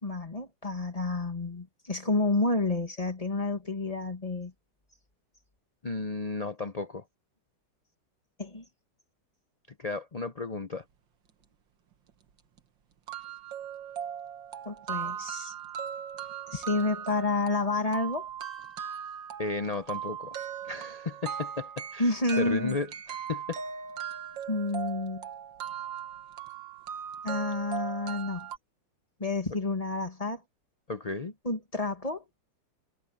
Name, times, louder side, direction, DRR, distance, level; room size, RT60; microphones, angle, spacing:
voice 1, 0.0-4.5 8.4-8.6 14.7-15.5 16.5-18.3 22.0-22.8 24.5-25.3 27.2-28.5 29.2-30.4 31.4-32.2, left 2 dB, 20° left, 1.8 m, -30 dB
voice 2, 5.8-7.0 9.8-10.8 19.4-20.4 20.6-22.1 22.4-23.6 30.9-31.3, left 3 dB, 90° left, 0.3 m, -34 dB
sound 1, 12.1-12.2 12.6-12.7 13.1-28.6, right 8 dB, 85° right, 2.1 m, -38 dB
omnidirectional pair, 2.0 m